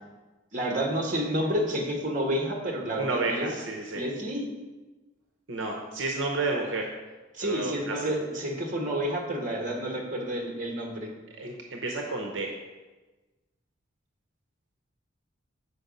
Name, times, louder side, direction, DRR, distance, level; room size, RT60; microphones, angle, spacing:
voice 1, 0.5-3.5 3.9-4.4 7.3-11.1, equal, 40° right, 0 dB, 1.3 m, -30 dB
voice 2, 3.0-4.0 5.5-6.9 7.4-8.0 11.4-12.5, right 3 dB, 70° right, 1 dB, 0.8 m, -31 dB
6.7 x 4.7 x 5.2 m, 1.2 s
head